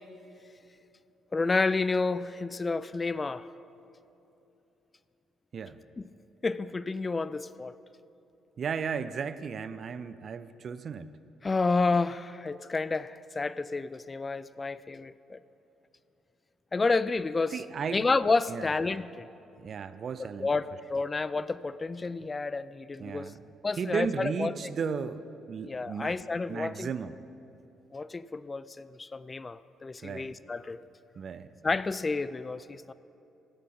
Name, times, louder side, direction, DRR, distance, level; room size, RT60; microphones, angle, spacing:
voice 1, 1.3-3.5 6.0-6.1 6.4-7.7 11.4-15.4 16.7-17.6 17.9-19.3 20.2-23.3 23.6-24.5 25.7-26.9 27.9-30.8 31.6-32.9, left 3 dB, 30° left, 16 dB, 0.3 m, -30 dB
voice 2, 8.6-11.1 17.5-18.0 18.5-18.7 19.6-20.5 23.0-23.4 23.8-25.2 25.5-26.2 26.5-27.2 30.0-30.3 31.2-31.5, right 6 dB, 50° right, 14 dB, 0.4 m, -34 dB
14.5 x 6.1 x 5.7 m, 2.9 s
hypercardioid pair, 50°, 0 cm